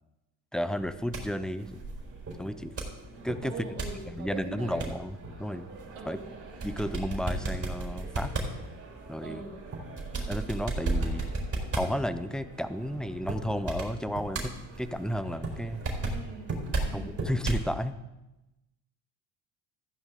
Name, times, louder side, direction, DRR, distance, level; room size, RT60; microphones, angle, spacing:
voice 1, 0.5-1.8 2.4-2.7 3.2-3.5 4.1-5.7 6.1-6.2 6.6-8.3 9.1-9.4 10.3-11.2 11.7-15.8 16.9-18.0, equal, ahead, 12 dB, 0.7 m, -33 dB
sound 1, 0.7-17.7, right 2 dB, 30° right, 4.2 m, -36 dB
voice 2, 3.4-4.9 5.9-6.3 9.2-9.6 16.1-16.5 16.8-17.1, right 5 dB, 85° right, 1 dB, 2.7 m, -41 dB
15.0 x 10.0 x 3.8 m, 0.98 s
supercardioid pair, 85°, 44 cm